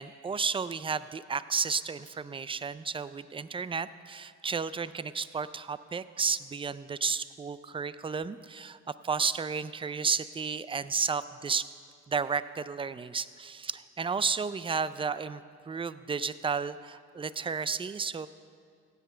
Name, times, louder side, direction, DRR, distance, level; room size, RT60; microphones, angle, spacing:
voice 1, 0.0-8.8 9.0-11.6 12.1-18.3, right 5 dB, 20° right, 15 dB, 0.4 m, -32 dB
16.0 x 8.2 x 5.6 m, 2.2 s
cardioid pair, 90°, 30 cm